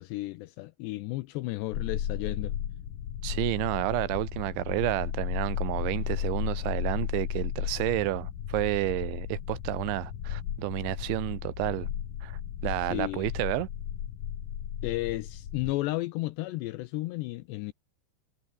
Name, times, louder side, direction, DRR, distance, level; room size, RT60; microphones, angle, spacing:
voice 1, 0.0-2.5 12.9-13.3 14.8-17.7, left 18 dB, 80° left, 2.5 m, -33 dB
sound 1, 1.7-15.7, left 10 dB, 55° left, 3.1 m, -34 dB
voice 2, 3.2-11.9 12.2-13.7, right 18 dB, 80° right, 3.1 m, -30 dB
omnidirectional pair, 5.6 m